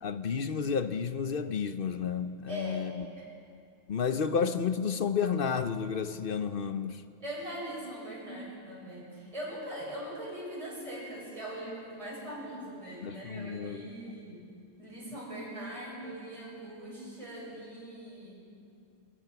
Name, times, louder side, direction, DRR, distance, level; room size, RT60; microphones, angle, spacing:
voice 1, 0.0-3.1 3.9-7.0 13.0-13.9, left 6 dB, 50° left, 11 dB, 0.9 m, -31 dB
voice 2, 2.5-3.3 7.2-14.5 14.8-18.4, equal, 25° right, -5 dB, 6.4 m, -41 dB
22.5 x 21.0 x 6.0 m, 2.4 s
omnidirectional pair, 1.3 m